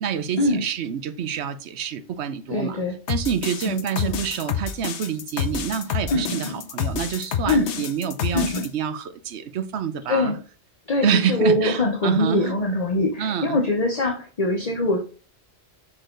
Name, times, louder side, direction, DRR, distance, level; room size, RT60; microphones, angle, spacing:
voice 1, 0.0-2.8 3.1-10.3 11.0-12.5 13.2-13.6, right 8 dB, 75° right, 0.9 m, -27 dB
voice 2, 2.5-3.0 3.7-4.2 6.1-6.6 7.5-7.8 8.3-8.7 10.1-10.4 10.9-15.0, left 2 dB, 40° left, 0.9 m, -23 dB
sound 1, 3.1-8.7, left 8 dB, 85° left, 1.0 m, -28 dB
6.3 x 4.5 x 3.8 m
omnidirectional pair, 1.1 m